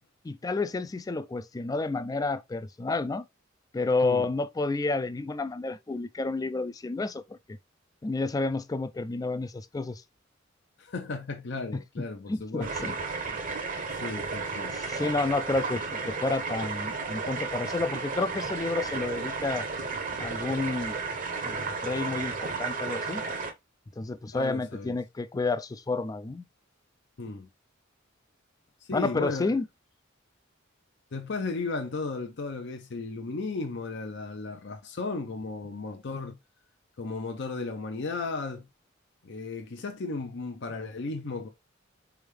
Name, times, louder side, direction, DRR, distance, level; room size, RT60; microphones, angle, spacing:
voice 1, 0.2-3.2 3.7-7.2 8.0-10.0 11.7-13.0 14.7-19.7 20.2-21.0 21.4-23.2 24.0-26.4 28.9-29.7, left 3 dB, 20° left, 0.3 m, -30 dB
voice 2, 10.8-12.9 13.3-13.4 13.9-14.8 24.3-25.0 27.2-27.5 28.9-29.5 31.1-36.4 37.0-38.7 39.2-41.5, left 3 dB, 60° left, 0.6 m, -35 dB
sound 1, 12.6-23.5, right 4 dB, 40° right, 0.8 m, -33 dB
4.5 x 3.5 x 3.1 m
head